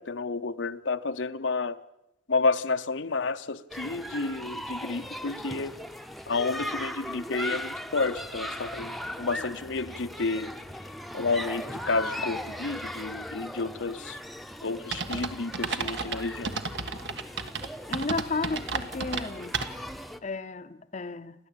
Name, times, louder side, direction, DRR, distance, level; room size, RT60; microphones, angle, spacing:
voice 1, 0.0-1.8 2.3-5.7 6.3-10.5 11.1-14.2 14.6-16.5, left 3 dB, 85° left, 0.8 m, -30 dB
sound 1, 3.7-20.2, equal, ahead, 0.8 m, -38 dB
sound 2, 14.9-20.0, right 4 dB, 70° right, 1.6 m, -33 dB
voice 2, 17.9-19.6 20.2-21.3, left 3 dB, 40° left, 0.7 m, -33 dB
29.0 x 11.0 x 8.6 m
head